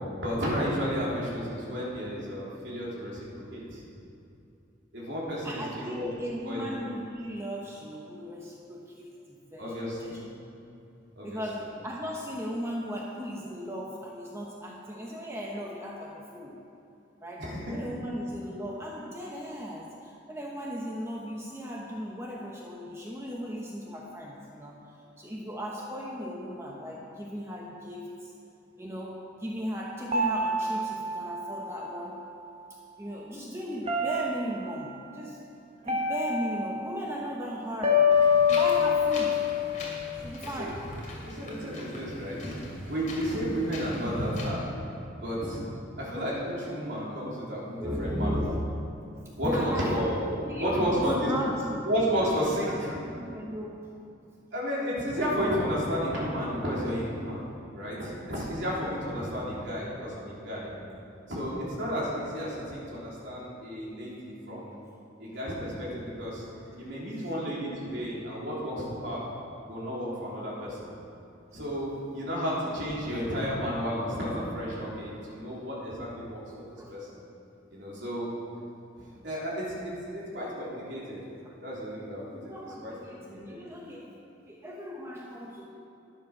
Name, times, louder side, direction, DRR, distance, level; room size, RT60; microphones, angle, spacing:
voice 1, 0.2-3.3 3.5-3.8 4.9-6.1 6.4-6.7 9.6-10.2 11.2-11.4 17.4-17.8 40.6-40.7 41.2-42.6 42.9-44.6 45.2-45.6 46.0-48.3 49.4-50.2 50.6-51.3 51.8-52.9 54.5-57.5 57.7-60.7 61.3-64.8 65.2-66.4 66.8-69.3 69.7-70.9 71.5-76.4 76.9-77.2 77.7-78.3 79.0-81.2 81.6-82.5 82.8-82.9 83.5-83.6, equal, 65° right, -6 dB, 3.4 m, -32 dB
voice 2, 5.4-9.7 10.0-10.2 11.2-16.6 17.2-24.8 25.2-28.3 28.8-32.2 33.0-35.4 35.8-38.1 38.5-39.4 40.1-40.8 47.8-48.6 49.4-50.0 50.4-51.8 52.4-53.8 66.9-67.3 76.8-77.0 81.4-81.6 82.3-84.1 84.4-85.7, equal, 15° right, -2 dB, 1.0 m, -36 dB
sound 1, 30.1-32.5 33.9-34.9 35.9-37.2 37.8-40.2, left 5 dB, 30° right, 1.4 m, -26 dB
Wind, 38.1-44.5, left 1 dB, 45° left, 2.8 m, -40 dB
11.5 x 10.5 x 6.0 m, 2.7 s
head